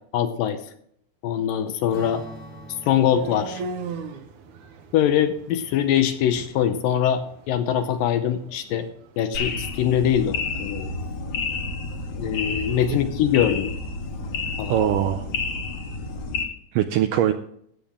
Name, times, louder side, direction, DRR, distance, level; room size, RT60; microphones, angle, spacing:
voice 1, 0.1-0.6 1.2-2.2 2.8-3.6 4.9-8.9 9.2-10.9 12.2-13.7 14.6-14.8, left 10 dB, 75° left, 9 dB, 2.2 m, -23 dB
Strum, 1.9-6.6, right 1 dB, 35° left, 1.5 m, -45 dB
sound 1, 2.0-10.0, right 4 dB, 70° right, 2.1 m, -40 dB
sound 2, 9.3-16.4, left 3 dB, 60° left, 2.4 m, -30 dB
voice 2, 12.5-13.0 14.7-15.2 16.7-17.3, right 11 dB, 85° right, 8 dB, 1.9 m, -22 dB
14.5 x 8.9 x 3.6 m, 0.67 s
omnidirectional pair, 4.4 m